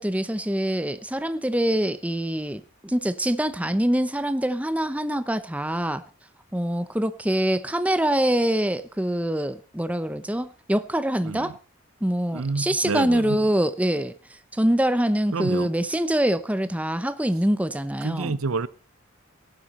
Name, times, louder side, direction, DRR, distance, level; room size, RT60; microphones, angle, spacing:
voice 1, 0.0-6.0 6.5-11.5 12.0-14.1 14.5-18.4, right 1 dB, 5° right, 0.7 m, -24 dB
voice 2, 11.2-11.5 12.3-13.4 15.3-15.7 18.0-18.7, right 4 dB, 90° right, 0.7 m, -28 dB
18.0 x 11.5 x 4.2 m
head